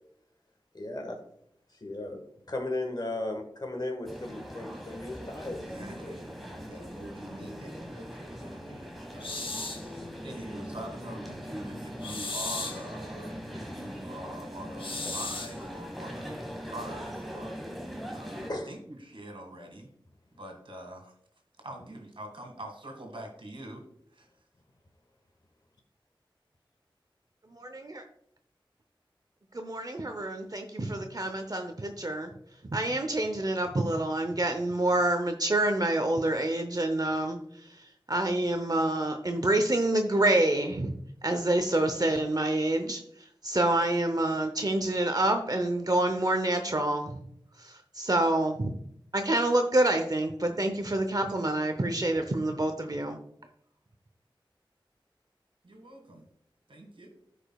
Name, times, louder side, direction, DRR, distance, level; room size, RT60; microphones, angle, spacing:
voice 1, 0.7-1.2 1.8-2.2 2.5-5.6 18.5-18.7, left 2 dB, 50° left, 3 dB, 1.5 m, -35 dB
sound 1, 4.0-18.5, equal, ahead, 1.4 m, -41 dB
voice 2, 5.5-16.4 16.7-17.5 18.1-19.9 20.4-21.1 21.6-23.8 24.1-24.3 55.6-56.3 56.7-57.1, right 1 dB, 75° right, 2 dB, 1.9 m, -44 dB
sound 2, 9.2-9.9 12.0-12.9 14.8-15.6, left 3 dB, 75° left, 0.8 m, -35 dB
voice 3, 27.5-28.0 29.5-32.3 32.7-37.4 37.7-40.9 41.2-43.0 43.4-47.2 47.6-48.7 49.1-53.2, right 1 dB, 45° right, 6 dB, 0.7 m, -27 dB
14.0 x 5.0 x 2.3 m, 0.70 s
wide cardioid pair, 60°, 9 cm